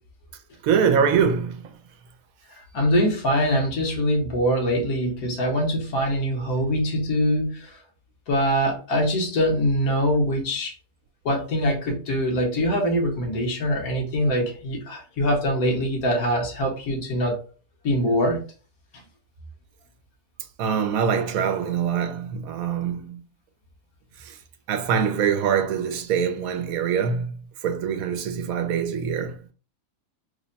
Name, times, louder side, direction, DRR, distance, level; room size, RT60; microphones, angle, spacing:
voice 1, 0.6-1.7 20.6-23.2 24.2-24.3 24.7-29.4, right 7 dB, 75° right, 1.0 m, -24 dB
voice 2, 2.7-7.7 8.3-10.7 11.2-17.4 17.8-18.4, equal, 80° left, 1.5 m, -23 dB
3.4 x 2.1 x 3.9 m
omnidirectional pair, 1.5 m